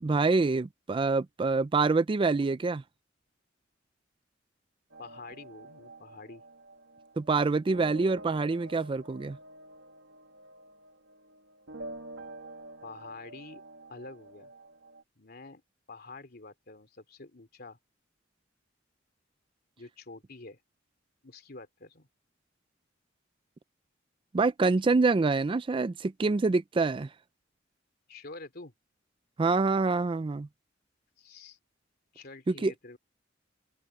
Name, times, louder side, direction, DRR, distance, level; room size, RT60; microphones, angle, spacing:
voice 1, 0.0-2.8 7.2-9.4 24.3-27.1 29.4-30.5 32.5-32.7, right 3 dB, 25° right, 0.3 m, -26 dB
sound 1, 4.9-15.0, right 2 dB, 85° right, 2.0 m, -48 dB
voice 2, 5.0-6.4 12.8-13.6 13.9-14.5 15.2-15.6 15.9-17.8 19.8-20.6 21.2-22.1 28.1-28.7 31.2-31.6 32.1-33.0, left 3 dB, 55° left, 3.0 m, -47 dB
head